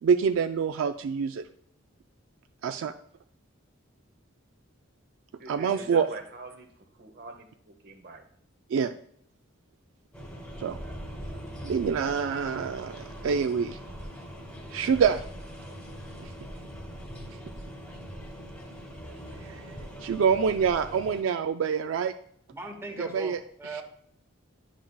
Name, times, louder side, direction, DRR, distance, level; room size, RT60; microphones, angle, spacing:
voice 1, 0.0-1.4 2.6-2.9 5.5-6.1 8.7-8.9 10.6-10.8 11.6-13.8 14.7-15.2 16.2-16.3 19.4-19.8 20.0-22.1 23.0-23.4, right 6 dB, 70° right, 9 dB, 0.3 m, -26 dB
voice 2, 5.4-8.3, right 3 dB, 50° right, 6 dB, 0.9 m, -43 dB
sound 1, 10.1-21.2, equal, 5° left, 1.2 m, -42 dB
voice 3, 22.5-23.8, right 2 dB, 15° right, 3 dB, 1.0 m, -39 dB
10.0 x 5.8 x 2.3 m, 0.66 s
head